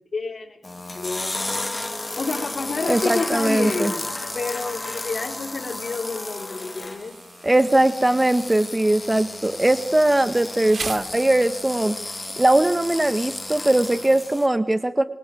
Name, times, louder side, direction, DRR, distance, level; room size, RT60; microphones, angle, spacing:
voice 1, 0.1-0.6 0.9-1.4 2.2-3.9 4.3-7.1, left 3 dB, 65° left, 0 dB, 4.1 m, -29 dB
sound 1, 0.6-14.5, left 2 dB, 30° left, 2.0 m, -33 dB
voice 2, 2.9-3.9 7.4-12.0 12.4-15.0, right 1 dB, 20° right, 10 dB, 1.5 m, -20 dB
Insect, 6.8-11.8, right 4 dB, 70° right, 3.6 m, -40 dB
26.5 x 24.0 x 9.3 m, 0.74 s
wide cardioid pair, 65°, 0 cm